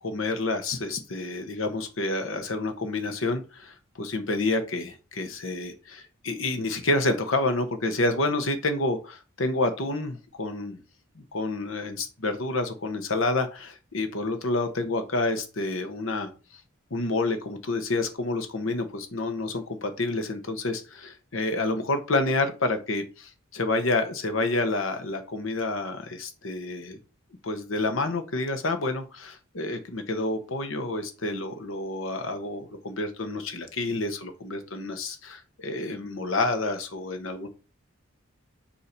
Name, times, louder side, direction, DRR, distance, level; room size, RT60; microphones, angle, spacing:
voice 1, 0.0-10.8 11.1-16.3 16.9-27.0 27.4-37.5, left 2 dB, 80° left, 8 dB, 1.1 m, -29 dB
7.0 x 2.8 x 5.2 m, 0.33 s
head